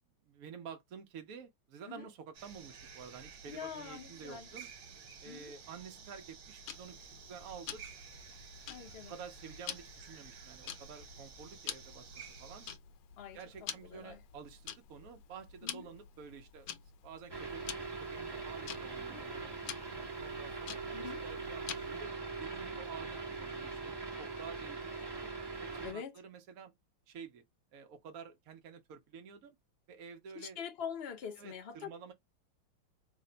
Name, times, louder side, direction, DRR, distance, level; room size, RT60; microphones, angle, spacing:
voice 1, 0.3-4.7 5.2-7.8 9.1-12.7 13.3-16.7 17.0-19.6 20.2-20.8 21.2-22.1 22.4-23.9 24.2-26.7 27.1-27.4 27.7-29.6 29.9-30.6 31.4-32.1, right 6 dB, 80° right, 0.7 m, -50 dB
sound 1, 2.3-12.8, right 6 dB, 65° right, 1.5 m, -52 dB
voice 2, 3.5-4.5 5.2-5.5 8.7-9.1 13.2-14.2 15.6-15.9 20.9-21.2 25.8-26.1 30.3-31.9, left 7 dB, 55° left, 0.6 m, -44 dB
Tick-tock, 6.7-22.1, left 9 dB, 70° left, 1.1 m, -48 dB
sound 2, 17.3-25.9, right 4 dB, 35° right, 0.4 m, -41 dB
3.4 x 2.1 x 3.8 m
omnidirectional pair, 2.3 m